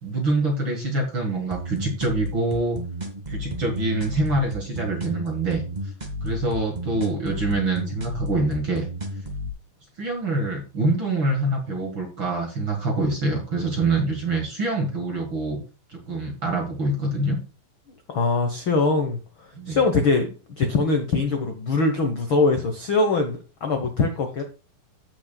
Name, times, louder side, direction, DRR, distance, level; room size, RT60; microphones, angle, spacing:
voice 1, 0.0-2.8 3.3-5.9 6.2-8.9 10.0-15.6 15.9-17.4 19.5-19.8, right 2 dB, 45° right, 2 dB, 1.8 m, -25 dB
sound 1, 1.5-9.5, equal, 25° right, 0.8 m, -32 dB
voice 2, 18.1-24.4, left 3 dB, 90° left, 5 dB, 1.1 m, -23 dB
15.5 x 6.4 x 2.3 m, 0.33 s
omnidirectional pair, 4.2 m